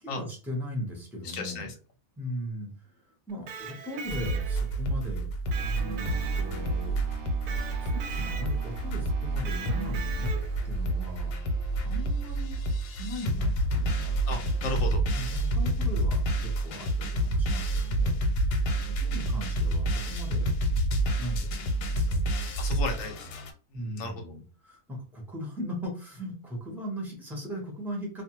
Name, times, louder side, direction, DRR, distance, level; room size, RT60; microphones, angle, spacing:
voice 1, 0.0-1.7 2.2-6.9 7.8-10.3 10.6-11.3 11.8-12.7 13.0-14.2 15.0-18.2 18.9-20.5 21.2-22.2 23.7-28.2, equal, ahead, -1 dB, 0.5 m, -38 dB
voice 2, 1.2-1.7 11.3-11.5 14.3-15.0 22.6-23.3 24.0-24.2, left 3 dB, 60° left, 4 dB, 1.0 m, -34 dB
Electric guitar, 3.3-4.8 5.5-6.9 7.5-8.7 9.5-10.7, right 5 dB, 90° right, 1.2 m, -40 dB
sound 1, 4.1-23.5, right 1 dB, 85° left, 1.2 m, -28 dB
sound 2, 5.5-14.7, right 2 dB, 70° right, 0.5 m, -46 dB
2.5 x 2.2 x 2.9 m, 0.36 s
omnidirectional pair, 1.7 m